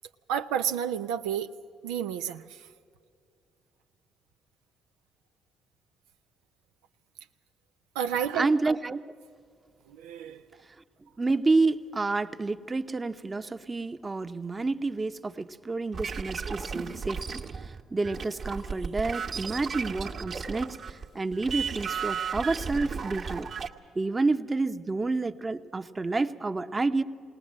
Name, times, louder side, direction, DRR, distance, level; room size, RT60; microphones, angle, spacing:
voice 1, 0.3-1.5 1.8-2.6 8.0-8.5 9.9-10.4, right 9 dB, 90° right, 6 dB, 0.5 m, -30 dB
voice 2, 8.3-9.0 11.2-23.5 23.9-27.0, right 3 dB, 30° right, 8 dB, 0.9 m, -29 dB
sound 1, 15.9-21.0 21.3-23.7, right 6 dB, 55° right, 1.4 m, -35 dB
20.5 x 19.0 x 7.5 m, 2.3 s
supercardioid pair, 60°, 0 cm